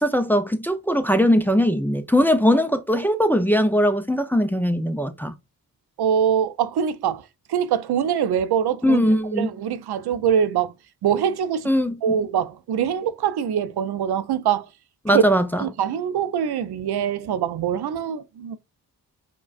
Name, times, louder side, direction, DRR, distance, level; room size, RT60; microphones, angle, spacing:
voice 1, 0.0-5.3 8.8-9.5 11.7-12.0 15.1-15.7, equal, 5° left, 0.4 m, -20 dB
voice 2, 6.0-7.2 7.5-9.0 9.3-10.7 11.0-11.7 12.0-14.7 15.1-15.2 15.6-18.6, right 8 dB, 85° right, 0.5 m, -23 dB
4.8 x 2.3 x 2.3 m
wide cardioid pair, 90°, 38 cm